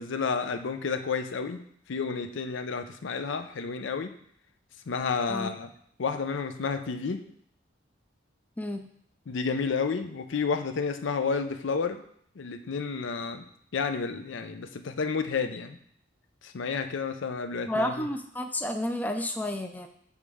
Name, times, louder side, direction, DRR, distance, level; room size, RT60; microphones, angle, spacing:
voice 1, 0.0-4.2 4.9-5.7 6.0-7.2 9.3-12.0 12.4-13.4 13.7-15.8 16.4-18.1, left 5 dB, 80° left, 9 dB, 0.5 m, -31 dB
voice 2, 8.6-8.9 17.7-19.9, left 1 dB, 10° left, 6 dB, 0.3 m, -31 dB
7.1 x 3.3 x 4.8 m, 0.67 s
head